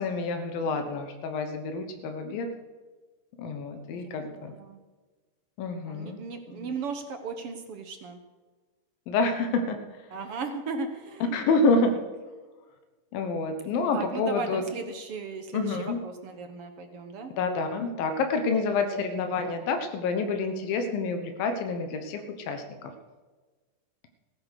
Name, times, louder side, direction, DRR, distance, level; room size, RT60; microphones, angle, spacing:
voice 1, 0.0-2.5 3.4-4.5 5.6-6.2 9.1-9.8 11.3-12.0 13.1-14.6 15.5-16.0 17.4-22.9, left 3 dB, 90° left, 6 dB, 3.1 m, -28 dB
voice 2, 4.3-4.8 5.9-8.2 10.1-11.4 11.8-12.0 13.9-17.3 18.9-19.0, right 4 dB, 65° right, 6 dB, 1.4 m, -37 dB
16.5 x 10.5 x 6.5 m, 1.3 s
omnidirectional pair, 4.0 m